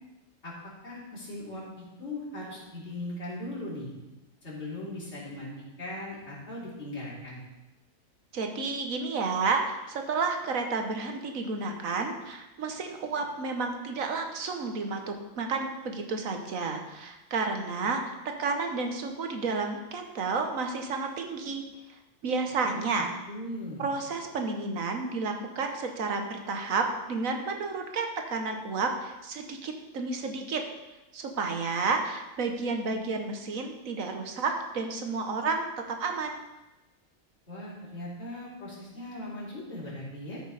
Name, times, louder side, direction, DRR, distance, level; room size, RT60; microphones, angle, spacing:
voice 1, 0.8-3.9 4.4-5.5 5.8-7.4 22.6-22.9 23.2-23.8 37.5-40.4, left 1 dB, 55° left, -7 dB, 3.4 m, -39 dB
voice 2, 8.3-21.6 22.2-23.1 23.8-30.6 31.1-35.7 36.0-36.4, right 4 dB, 80° right, 4 dB, 1.5 m, -31 dB
13.5 x 6.2 x 4.1 m, 1.0 s
omnidirectional pair, 1.4 m